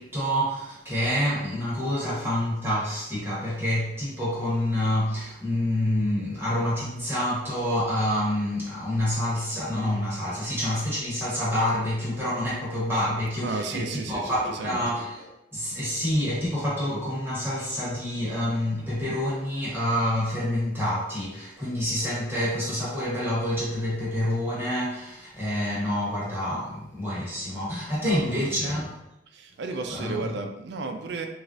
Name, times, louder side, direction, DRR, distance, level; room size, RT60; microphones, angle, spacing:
voice 1, 0.0-28.9 29.9-30.2, left 1 dB, 15° right, -9 dB, 0.9 m, -27 dB
voice 2, 13.4-14.8 28.0-28.8 29.3-31.3, right 3 dB, 65° right, 5 dB, 0.4 m, -33 dB
3.2 x 2.4 x 2.5 m, 0.89 s
head